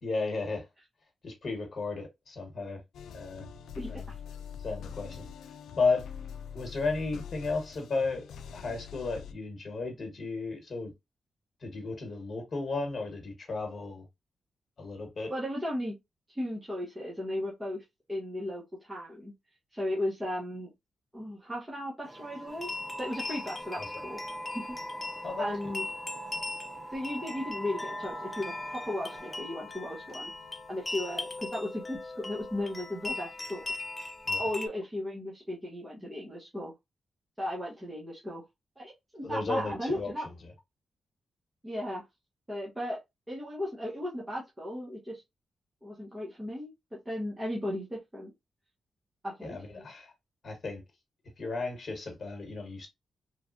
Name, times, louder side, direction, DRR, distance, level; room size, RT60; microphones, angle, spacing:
voice 1, 0.0-0.6 1.2-2.8 3.1-3.5 3.9-4.1 4.6-5.2 5.8-6.1 6.5-8.2 8.5-10.9 11.6-14.0 14.8-15.3 23.7-23.9 25.2-25.6 34.3-34.4 39.2-40.1 40.4-40.5 49.4-50.1 50.4-50.8 51.4-52.9, left 3 dB, 50° left, 1.2 m, -34 dB
sound 1, 2.9-9.3, left 7 dB, 90° left, 0.3 m, -44 dB
voice 2, 15.3-15.9 16.3-17.8 18.1-19.3 19.7-20.7 21.1-22.7 23.0-24.2 24.5-24.7 25.4-25.9 26.9-30.3 30.7-33.6 34.4-36.7 37.4-38.4 38.8-40.2 41.6-42.0 42.5-43.0 43.3-45.2 45.8-48.3 49.2-49.9, left 1 dB, 15° right, 0.9 m, -36 dB
sound 2, 22.0-29.4, right 1 dB, 35° right, 0.6 m, -43 dB
sound 3, 22.5-34.7, left 3 dB, 30° left, 0.5 m, -39 dB
3.2 x 2.2 x 2.5 m
cardioid pair, 80°, 0 cm